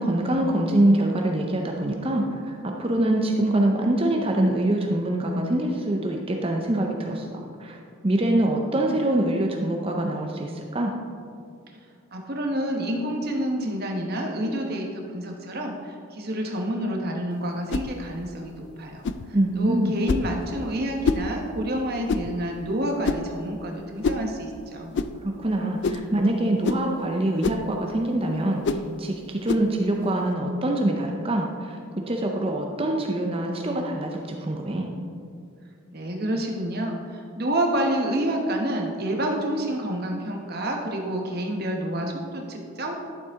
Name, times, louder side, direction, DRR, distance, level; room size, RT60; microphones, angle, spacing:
voice 1, 0.0-10.9 19.3-19.9 25.2-31.8 32.1-34.9, right 1 dB, 25° right, 1 dB, 0.6 m, -24 dB
voice 2, 12.1-19.1 19.6-24.9 35.9-43.1, right 1 dB, 45° right, 1 dB, 1.2 m, -28 dB
sound 1, 17.7-17.9 19.0-19.3 20.1-20.3 21.0-21.3 22.1-22.3 23.0-23.3 24.0-24.3 24.9-25.1 25.8-26.1 26.6-26.9 27.4-27.7 28.6-28.9 29.5-29.7, left 4 dB, 50° left, 0.3 m, -26 dB
11.5 x 7.2 x 3.7 m, 2.4 s
head